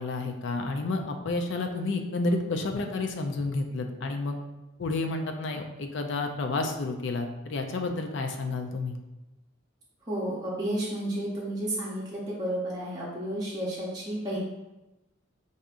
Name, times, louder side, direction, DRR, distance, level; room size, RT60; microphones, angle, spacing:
voice 1, 0.0-4.4 4.8-9.0, left 3 dB, 65° left, 5 dB, 0.4 m, -30 dB
voice 2, 10.1-14.4, right 1 dB, 20° right, -8 dB, 0.7 m, -32 dB
4.7 x 2.7 x 2.4 m, 1.0 s
head